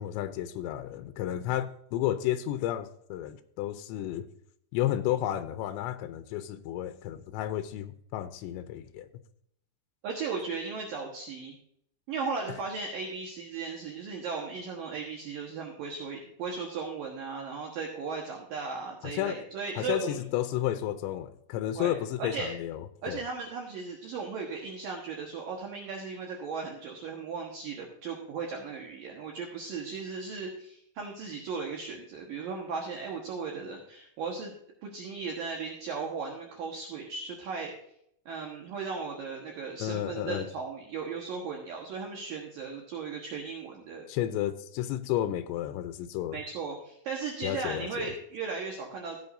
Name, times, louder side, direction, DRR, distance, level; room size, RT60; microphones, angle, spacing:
voice 1, 0.0-4.3 4.7-9.1 19.0-19.4 19.8-23.2 39.8-40.5 44.1-46.4 47.4-48.1, left 12 dB, 85° left, 9 dB, 2.9 m, -32 dB
voice 2, 10.0-11.6 12.1-20.2 21.8-22.5 23.0-34.5 34.8-37.7 38.3-44.0 46.3-49.2, right 4 dB, 65° right, 0 dB, 2.6 m, -36 dB
15.5 x 8.2 x 2.6 m, 0.71 s
omnidirectional pair, 5.1 m